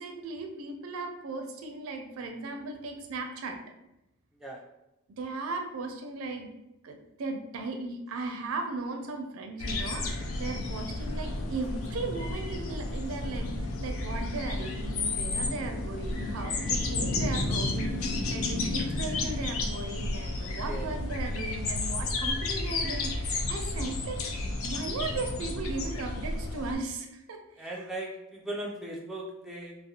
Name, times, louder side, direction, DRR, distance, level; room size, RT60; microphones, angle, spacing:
voice 1, 0.0-3.6 5.2-6.5 6.8-24.2 24.6-27.7, right 3 dB, 80° right, 4 dB, 0.4 m, -37 dB
sound 1, 9.6-26.7, left 2 dB, 80° left, 0.4 m, -32 dB
voice 2, 27.6-29.8, right 1 dB, ahead, -3 dB, 0.3 m, -38 dB
2.4 x 2.0 x 2.7 m, 0.90 s
head